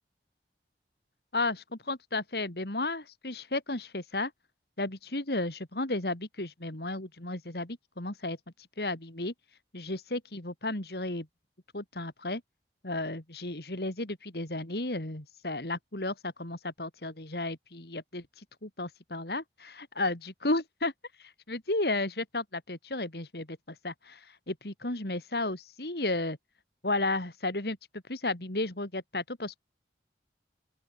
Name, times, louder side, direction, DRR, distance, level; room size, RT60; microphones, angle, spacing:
voice 1, 1.3-4.3 4.8-8.4 8.8-9.3 9.7-11.3 11.7-12.4 12.8-20.9 21.5-23.6 23.8-26.4 26.8-27.8 28.1-29.6, left 2 dB, 65° left, 2.9 m, -33 dB
open air
head